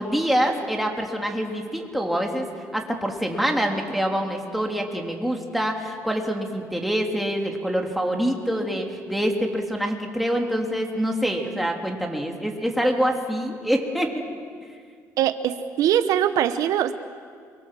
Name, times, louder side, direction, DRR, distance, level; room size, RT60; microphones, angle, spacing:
voice 1, 0.0-14.1, equal, ahead, 1 dB, 3.3 m, -25 dB
voice 2, 15.2-16.9, right 10 dB, 75° right, 10 dB, 1.0 m, -22 dB
28.5 x 23.5 x 7.6 m, 2.1 s
cardioid pair, 115°, 6 cm